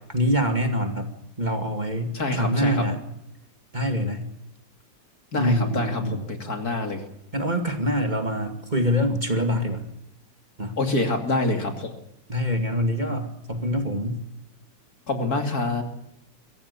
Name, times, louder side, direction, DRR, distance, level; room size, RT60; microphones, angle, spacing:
voice 1, 0.1-1.1 1.4-3.0 3.7-4.3 5.4-6.3 7.3-9.9 10.6-10.8 12.3-14.2, equal, 25° right, 5 dB, 2.5 m, -25 dB
voice 2, 2.1-2.8 5.3-7.0 10.8-11.9 15.1-15.8, left 2 dB, 55° left, 5 dB, 3.2 m, -26 dB
23.5 x 16.0 x 8.5 m, 0.81 s
omnidirectional pair, 2.0 m